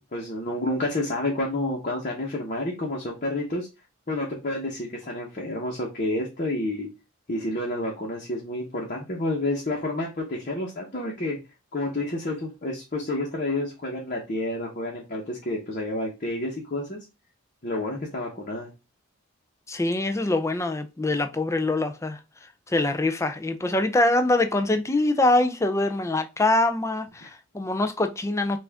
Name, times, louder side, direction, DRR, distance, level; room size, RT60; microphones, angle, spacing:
voice 1, 0.1-3.7 4.1-6.9 7.3-11.4 11.7-17.0 17.6-18.7, left 1 dB, 40° left, 1.0 m, -29 dB
voice 2, 19.7-22.2 22.7-28.6, left 2 dB, 15° left, 0.4 m, -24 dB
5.9 x 2.5 x 3.4 m
head